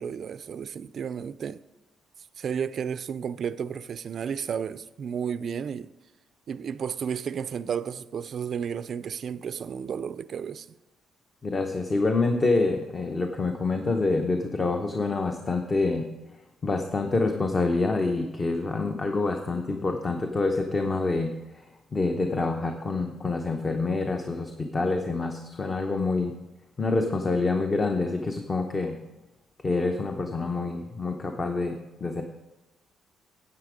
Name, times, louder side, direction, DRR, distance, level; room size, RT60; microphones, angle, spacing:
voice 1, 0.0-1.6 2.4-5.9 6.5-10.7, right 7 dB, 55° right, 0.4 m, -32 dB
voice 2, 11.4-16.1 16.6-21.3 21.9-26.3 26.8-29.0 29.6-32.2, left 3 dB, 30° left, 0.8 m, -27 dB
9.6 x 7.7 x 5.0 m
cardioid pair, 90°, 0 cm